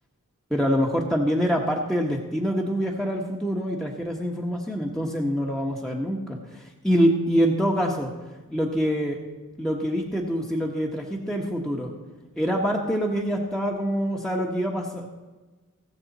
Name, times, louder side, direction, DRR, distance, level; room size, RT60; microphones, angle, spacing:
voice 1, 0.5-8.1 8.5-9.2 9.6-11.9 12.4-15.1, equal, ahead, 0 dB, 1.3 m, -25 dB
19.5 x 6.7 x 4.2 m, 1.2 s
wide cardioid pair, 45°, 33 cm